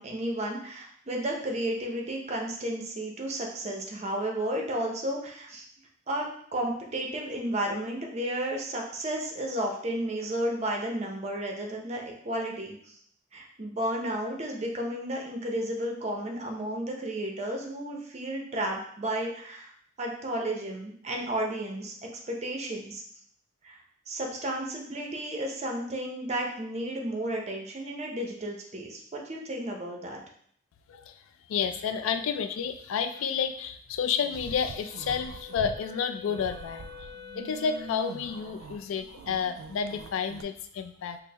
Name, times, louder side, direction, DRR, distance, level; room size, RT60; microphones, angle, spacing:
voice 1, 0.0-5.6 6.1-13.0 13.3-19.7 20.0-23.0 23.6-23.8 24.1-30.2, right 1 dB, 35° right, 1 dB, 0.6 m, -33 dB
voice 2, 30.9-31.2 31.5-37.1 37.3-41.2, left 7 dB, 85° left, 9 dB, 0.3 m, -30 dB
sound 1, 34.2-35.8 36.2-40.4, right 4 dB, 85° right, 0.3 m, -44 dB
Wind instrument woodwind instrument, 34.6-38.7, left 7 dB, 35° left, 1.1 m, -47 dB
4.4 x 2.0 x 3.3 m, 0.63 s
head